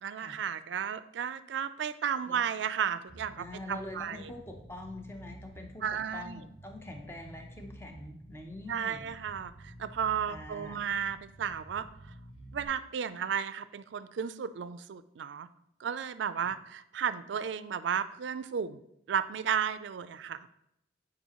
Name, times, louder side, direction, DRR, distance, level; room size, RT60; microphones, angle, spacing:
voice 1, 0.0-4.3 5.8-6.4 8.7-11.9 12.5-15.5 15.8-18.8 19.1-20.5, right 7 dB, 70° right, 14 dB, 0.4 m, -33 dB
Bass guitar, 3.1-12.7, right 1 dB, 45° left, 2.2 m, -51 dB
voice 2, 3.4-5.8 6.1-9.1 10.2-10.9, left 1 dB, 15° left, 3 dB, 0.7 m, -44 dB
8.2 x 4.9 x 2.9 m, 0.82 s
head